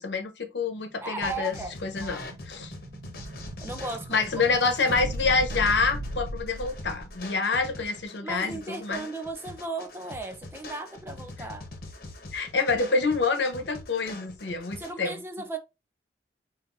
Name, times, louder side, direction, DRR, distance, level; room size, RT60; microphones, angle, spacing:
voice 1, 0.0-1.6 1.8-2.7 4.1-9.1 12.3-15.2, left 4 dB, 80° left, 0.9 m, -27 dB
voice 2, 1.0-1.7 2.0-2.3 3.6-4.4 7.5-7.6 8.2-11.7 14.8-15.6, right 2 dB, 15° right, 0.5 m, -36 dB
Explosion, 1.1-7.2, right 1 dB, 90° right, 0.5 m, -37 dB
sound 1, 1.2-14.9, left 2 dB, 55° left, 1.0 m, -43 dB
5.4 x 2.6 x 2.6 m
head